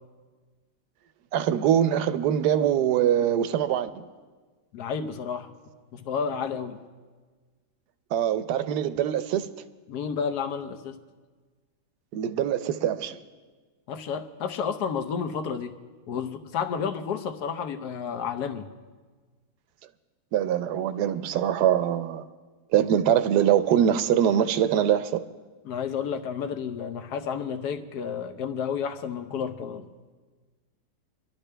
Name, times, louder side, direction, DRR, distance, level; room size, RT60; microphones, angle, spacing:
voice 1, 1.3-4.0 8.1-9.5 12.1-13.2 20.3-22.2 22.7-25.2, right 10 dB, 75° right, 1.2 m, -23 dB
voice 2, 4.7-5.5 5.9-6.8 9.9-11.0 13.9-15.7 16.1-18.7 25.6-29.9, left 7 dB, 70° left, 1.4 m, -31 dB
25.5 x 12.0 x 3.3 m
omnidirectional pair, 1.8 m